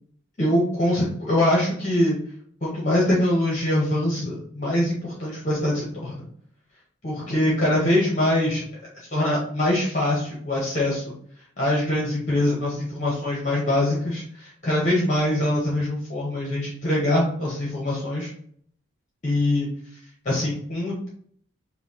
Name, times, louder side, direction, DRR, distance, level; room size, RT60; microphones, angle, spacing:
voice 1, 0.4-2.2 2.6-6.3 7.0-8.6 8.9-11.1 11.6-18.3 19.2-19.7 20.2-21.1, left 1 dB, 35° left, -5 dB, 1.0 m, -23 dB
5.5 x 2.3 x 2.8 m, 0.62 s
head